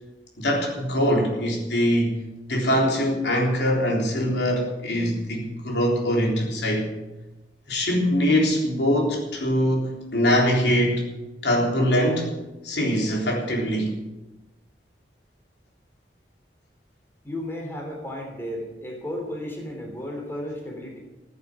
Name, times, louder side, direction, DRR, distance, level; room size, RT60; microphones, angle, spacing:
voice 1, 0.4-2.2 2.5-6.9 7.7-11.0 11.4-12.3 12.6-13.9, equal, 70° left, -1 dB, 3.7 m, -23 dB
voice 2, 17.2-21.0, left 1 dB, 15° left, 0 dB, 3.4 m, -33 dB
15.5 x 8.3 x 8.5 m, 1.0 s
head